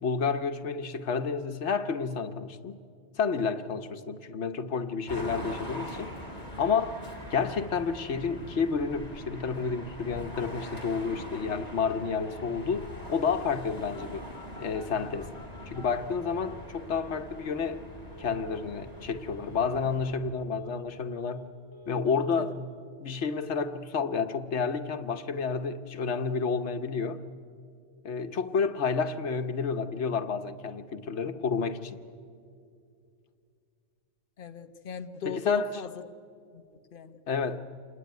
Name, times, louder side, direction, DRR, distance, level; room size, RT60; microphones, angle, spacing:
voice 1, 0.0-2.8 3.2-6.1 6.6-7.0 7.3-14.3 14.6-15.3 15.7-17.8 18.2-21.5 21.9-27.2 28.0-32.0 35.2-35.7 37.3-37.6, left 5 dB, 80° left, 1.3 m, -30 dB
sound 1, 5.1-20.2, equal, 35° left, 4.1 m, -43 dB
Telephone, 7.2-7.3 7.6-7.7 7.9-8.0 8.3-8.7 9.0-9.1 9.3-9.7 10.1-10.2 10.7-11.3 12.1-12.3 12.6-13.3 13.9-16.6 16.9-17.2 17.5-17.8 18.1-18.4 18.7-19.0 19.3-19.6 19.9-20.2 20.5-21.4 21.7-22.1 22.3-22.6, equal, 25° right, 2.4 m, -52 dB
voice 2, 34.4-36.0 36.5-36.6 36.9-37.2, left 7 dB, 50° left, 1.1 m, -38 dB
27.0 x 19.5 x 9.4 m
omnidirectional pair, 1.2 m